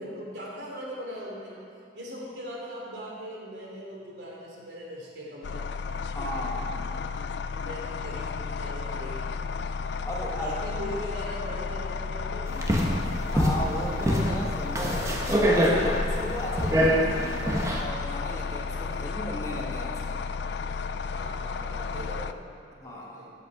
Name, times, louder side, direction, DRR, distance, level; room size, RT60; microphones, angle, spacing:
voice 1, 0.0-1.6 1.9-5.6 7.5-9.3 10.3-12.7 21.0-22.3 22.8-23.3, equal, 75° right, -4 dB, 3.0 m, -40 dB
sound 1, 5.4-22.3, left 5 dB, 70° left, 0.4 m, -33 dB
voice 2, 6.1-6.9 10.0-10.6 12.9-15.2 15.6-20.2 22.8-23.2, equal, 20° left, -3 dB, 1.5 m, -36 dB
sound 2, 12.5-17.8, equal, 15° right, 1.1 m, -25 dB
14.0 x 8.0 x 4.9 m, 2.4 s
head